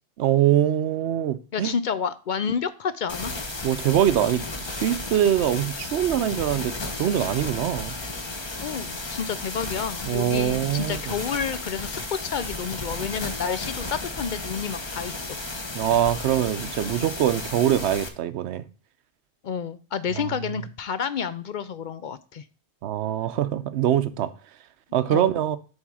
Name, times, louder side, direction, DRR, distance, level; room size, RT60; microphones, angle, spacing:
voice 1, 0.2-1.7 3.6-8.0 10.1-11.1 15.7-18.6 20.2-20.3 22.8-24.3 24.9-25.6, right 11 dB, 70° right, 0.9 m, -23 dB
voice 2, 1.5-3.3 8.6-15.4 19.4-22.4 25.1-25.3, left 7 dB, 55° left, 0.5 m, -30 dB
sound 1, 3.1-18.1, left 2 dB, 25° left, 0.9 m, -34 dB
7.3 x 3.6 x 6.2 m
omnidirectional pair, 1.2 m